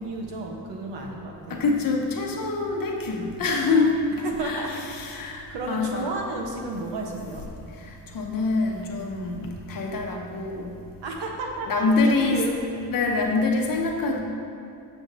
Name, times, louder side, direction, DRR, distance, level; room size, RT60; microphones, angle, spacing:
voice 1, 0.0-1.6 4.2-4.7 5.5-7.5 11.0-12.6, right 2 dB, 90° right, 0 dB, 1.1 m, -32 dB
voice 2, 1.5-3.9 4.4-4.6 4.9-6.1 7.8-10.7 11.7-12.4 12.9-14.2, left 3 dB, 55° left, 1 dB, 0.8 m, -25 dB
7.2 x 7.0 x 2.7 m, 2.5 s
wide cardioid pair, 160°, 42 cm